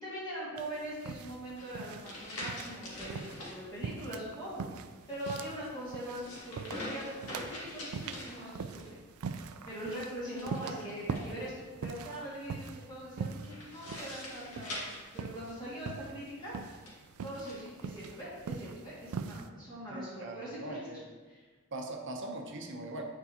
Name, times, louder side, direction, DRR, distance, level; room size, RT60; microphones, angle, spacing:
voice 1, 0.0-4.6 5.1-9.0 9.7-11.5 11.8-16.6 17.2-20.8 21.3-21.5, equal, 20° left, -9 dB, 2.0 m, -42 dB
sound 1, 0.6-19.5, right 5 dB, 75° right, 0.4 m, -43 dB
sound 2, 1.6-3.6 5.0-8.9 10.3-11.6 13.4-15.8 16.6-17.6, left 1 dB, 80° left, 1.9 m, -44 dB
voice 2, 19.9-21.1 21.7-23.0, right 1 dB, 55° right, 3 dB, 0.8 m, -41 dB
9.7 x 4.6 x 2.9 m, 1.4 s
head